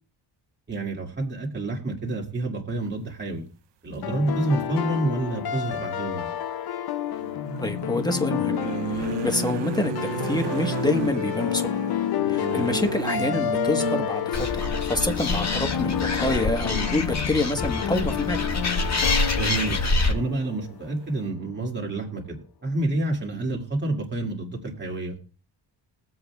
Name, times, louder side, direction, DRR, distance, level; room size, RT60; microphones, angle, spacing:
voice 1, 0.7-3.4 3.8-6.3 19.3-19.8 20.1-25.2, right 2 dB, 25° right, 2.4 m, -28 dB
sound 1, 4.0-20.9, left 10 dB, 55° left, 0.6 m, -29 dB
sound 2, 4.9-5.0 7.2-14.9 16.1-16.2 16.5-16.7, right 7 dB, 65° right, 0.8 m, -33 dB
voice 2, 7.6-8.6 8.9-9.9 10.2-11.8 12.3-18.4, left 2 dB, 10° left, 1.3 m, -27 dB
Animal, 14.3-20.1, left 2 dB, 35° left, 1.7 m, -26 dB
22.0 x 7.8 x 2.4 m
wide cardioid pair, 125°, 46 cm